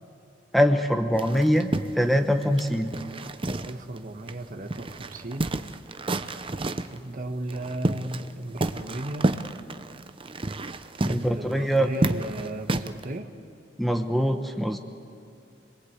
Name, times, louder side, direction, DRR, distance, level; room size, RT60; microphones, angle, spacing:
voice 1, 0.5-2.9 11.0-11.9 13.8-14.8, equal, ahead, 5 dB, 1.0 m, -23 dB
sound 1, 1.1-4.0 4.3-4.4 4.7-7.0 7.5-8.3 8.6-13.1, right 2 dB, 30° right, 0.7 m, -30 dB
voice 2, 3.7-5.5 6.9-9.3 11.0-13.3, right 1 dB, 50° right, 5 dB, 1.5 m, -35 dB
26.0 x 22.0 x 8.3 m, 2.6 s
head